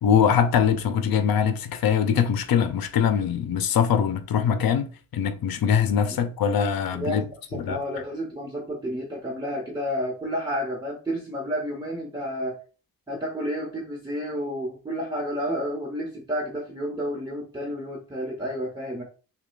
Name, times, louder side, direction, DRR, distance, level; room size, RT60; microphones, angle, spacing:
voice 1, 0.0-7.2 7.5-7.8, left 8 dB, 80° left, 0.6 m, -22 dB
voice 2, 6.9-12.6 13.1-19.0, equal, 10° right, 1.0 m, -31 dB
6.2 x 2.3 x 2.4 m
cardioid pair, 95°, 35 cm